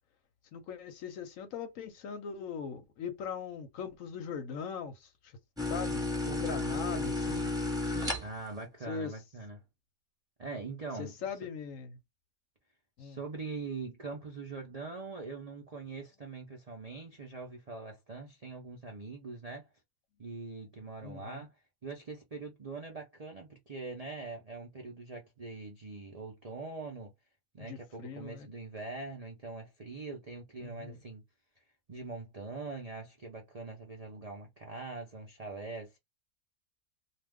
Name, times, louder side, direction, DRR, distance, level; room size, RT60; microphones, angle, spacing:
voice 1, 0.5-5.3 5.6-7.5 8.9-9.1 11.0-12.0 13.0-13.2 21.0-21.5 27.6-28.5 30.6-31.0, left 6 dB, 65° left, 0.9 m, -40 dB
sound 1, 5.6-8.6, left 2 dB, 5° right, 0.9 m, -32 dB
voice 2, 8.2-9.6 10.4-11.3 13.0-19.7 20.2-27.1 27.5-31.2 31.6-31.7 31.9-36.0, right 3 dB, 55° right, 0.4 m, -43 dB
2.5 x 2.3 x 3.4 m
omnidirectional pair, 1.7 m